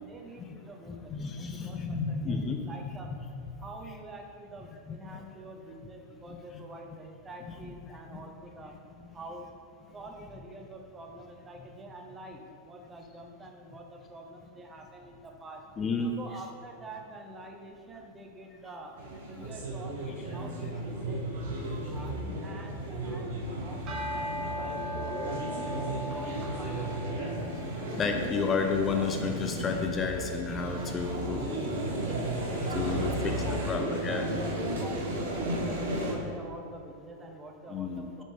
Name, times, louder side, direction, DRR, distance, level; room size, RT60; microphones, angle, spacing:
voice 1, 0.0-3.1 3.6-8.8 9.1-9.5 9.9-15.7 16.2-20.0 20.3-21.2 21.9-25.8 26.1-27.0 32.8-38.2, right 2 dB, 20° right, 2 dB, 0.9 m, -46 dB
voice 2, 0.9-2.7 4.9-5.2 6.3-6.4 8.1-8.2 15.8-16.1 27.2-27.3 28.0-31.9 32.7-33.3 33.7-34.3 37.7-38.2, left 5 dB, 30° left, 5 dB, 0.5 m, -31 dB
sound 1, 19.0-36.1, right 1 dB, 75° right, 1.5 m, -34 dB
sound 2, 23.9-33.1, left 1 dB, 40° right, 1.4 m, -41 dB
6.7 x 5.2 x 3.5 m, 2.3 s
hypercardioid pair, 100°, 0 cm